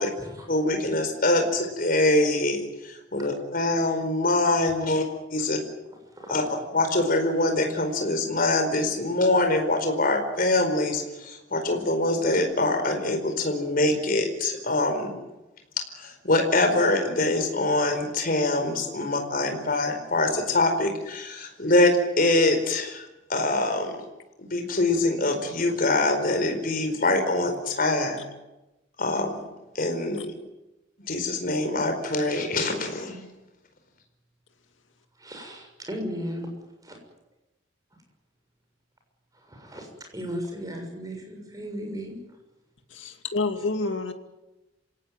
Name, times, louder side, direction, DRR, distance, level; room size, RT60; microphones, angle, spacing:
voice 1, 0.5-5.0 5.3-5.6 6.3-6.4 6.7-15.2 16.0-24.0 24.4-28.2 29.0-29.3 29.7-30.3 31.1-33.2, left 2 dB, 45° left, 4.7 m, -24 dB
voice 2, 35.2-36.5 36.8-37.0 39.3-42.1, equal, 20° right, 6.7 m, -36 dB
voice 3, 42.9-44.1, left 3 dB, 65° left, 2.5 m, -28 dB
27.5 x 18.0 x 9.2 m
head